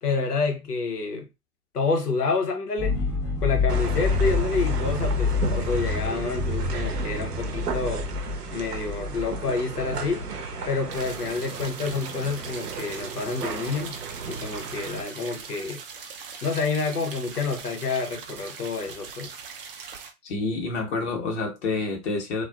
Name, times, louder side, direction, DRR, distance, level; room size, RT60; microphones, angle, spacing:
voice 1, 0.0-1.3 1.7-3.0 3.4-8.1 8.5-10.3 10.7-14.0 14.3-15.8 16.4-19.3, left 4 dB, 85° left, 0.9 m, -28 dB
sound 1, 2.8-10.9, left 4 dB, 20° left, 0.5 m, -28 dB
sound 2, 3.7-15.0, right 5 dB, 85° right, 0.7 m, -35 dB
sound 3, 10.9-20.1, right 6 dB, 40° right, 0.5 m, -41 dB
voice 2, 20.2-22.4, left 3 dB, 45° left, 1.0 m, -28 dB
2.4 x 2.4 x 2.2 m
figure-of-eight pair, 115°, 45 cm